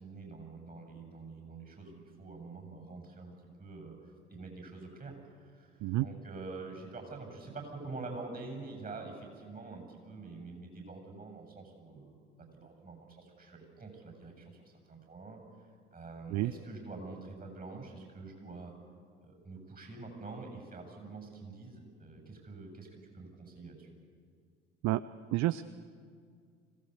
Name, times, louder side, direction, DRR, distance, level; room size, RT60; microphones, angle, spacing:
voice 1, 0.0-14.6 14.9-15.4 15.9-18.7 19.2-23.9, right 3 dB, 25° right, 3 dB, 7.6 m, -46 dB
voice 2, 25.3-25.6, right 17 dB, 50° right, 16 dB, 0.7 m, -29 dB
25.5 x 17.5 x 8.2 m, 2.1 s
figure-of-eight pair, 55°, 35 cm